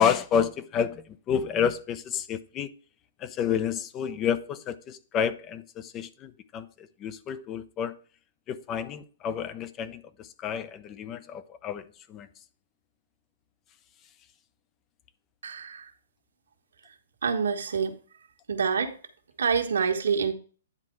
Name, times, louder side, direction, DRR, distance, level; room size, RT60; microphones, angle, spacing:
voice 1, 0.0-2.7 3.2-8.0 8.5-11.8 12.1-12.3, left 8 dB, 20° left, 0.6 m, -29 dB
voice 2, 15.4-15.9 17.2-18.0 18.5-19.0 19.4-20.3, right 6 dB, 90° right, 1.5 m, -26 dB
9.8 x 4.2 x 4.7 m
hypercardioid pair, 160°, 0 cm